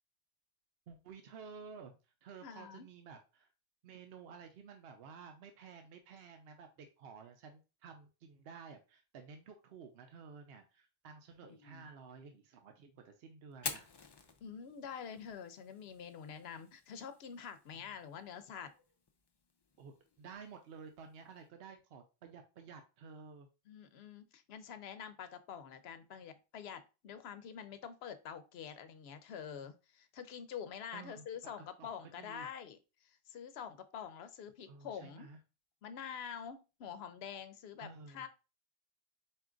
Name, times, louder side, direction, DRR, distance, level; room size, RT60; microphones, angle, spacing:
voice 1, 0.9-3.5 3.8-13.9 19.8-23.5 30.9-31.5 31.8-31.9 32.2-32.5 34.7-35.4 37.8-38.2, right 5 dB, 75° right, 6 dB, 0.8 m, -53 dB
voice 2, 2.4-2.9 11.4-11.9 14.4-18.7 23.7-35.3 35.8-38.3, left 7 dB, 80° left, 11 dB, 0.8 m, -47 dB
Fire, 13.5-21.5, left 4 dB, 45° left, 0.3 m, -50 dB
4.3 x 2.3 x 3.7 m, 0.30 s
omnidirectional pair, 1.1 m